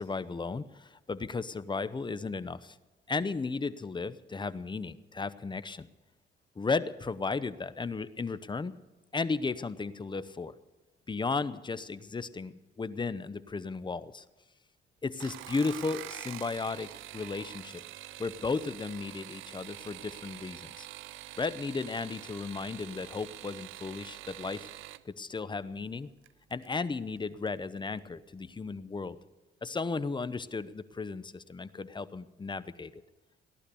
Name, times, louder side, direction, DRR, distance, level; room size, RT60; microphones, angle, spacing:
voice 1, 0.0-2.8 3.1-5.9 6.6-8.7 9.1-10.5 11.1-14.2 15.0-17.8 18.2-20.9 21.4-24.7 25.0-26.1 26.5-29.2 29.6-32.9, left 4 dB, 25° left, 15 dB, 0.8 m, -35 dB
sound 1, 15.1-25.0 26.2-26.7 27.2-27.6 27.9-28.0, right 15 dB, 85° right, 0.5 m, -45 dB
17.5 x 11.5 x 6.9 m, 1.2 s
cardioid pair, 90°, 20 cm